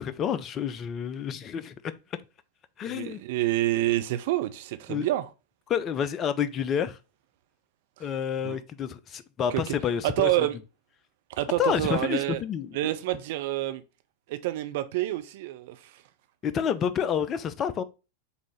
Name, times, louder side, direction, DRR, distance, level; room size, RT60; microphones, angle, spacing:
voice 1, 0.0-1.9 2.8-3.2 4.9-5.1 5.7-7.0 8.0-10.5 11.6-13.0 16.4-17.8, left 8 dB, 30° left, 0.4 m, -29 dB
voice 2, 2.9-5.2 8.4-8.6 9.5-9.7 10.0-10.6 11.4-12.4 12.7-13.8 14.3-15.8, right 15 dB, 50° right, 0.4 m, -27 dB
5.4 x 2.6 x 3.0 m
figure-of-eight pair, 90°, 0 cm